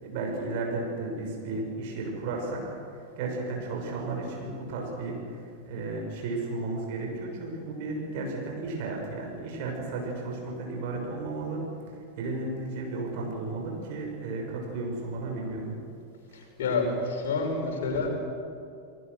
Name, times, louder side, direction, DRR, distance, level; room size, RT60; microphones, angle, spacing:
voice 1, 0.0-2.8 3.2-11.6 11.9-15.8 16.3-16.5, right 3 dB, 50° right, 0 dB, 6.2 m, -34 dB
voice 2, 16.6-18.1, left 3 dB, 60° left, 1 dB, 5.7 m, -28 dB
29.5 x 19.5 x 6.5 m, 2.4 s
figure-of-eight pair, 90°, 0 cm